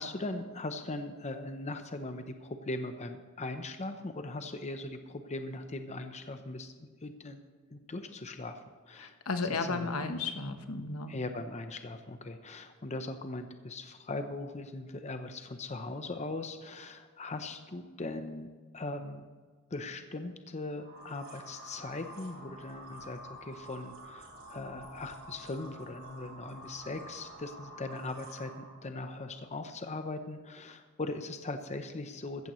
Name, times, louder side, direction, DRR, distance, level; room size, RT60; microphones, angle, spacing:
voice 1, 0.0-7.4 7.7-8.6 8.9-9.2 9.5-9.9 11.1-18.5 18.7-19.2 19.7-32.5, left 2 dB, 35° left, 8 dB, 0.7 m, -40 dB
voice 2, 9.0-11.1, left 4 dB, 80° left, 7 dB, 1.1 m, -34 dB
sound 1, 20.8-28.8, right 1 dB, 80° right, 4.4 m, -49 dB
15.0 x 14.5 x 3.1 m, 1.5 s
head